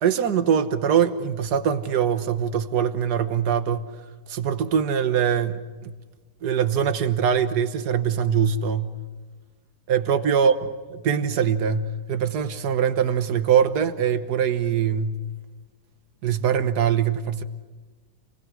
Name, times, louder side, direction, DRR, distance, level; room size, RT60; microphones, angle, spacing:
voice 1, 0.0-3.9 4.3-5.9 6.4-8.9 9.9-10.5 11.0-15.2 16.2-17.4, right 8 dB, 85° right, 11 dB, 1.7 m, -22 dB
28.0 x 20.0 x 6.3 m, 1.3 s
omnidirectional pair, 1.7 m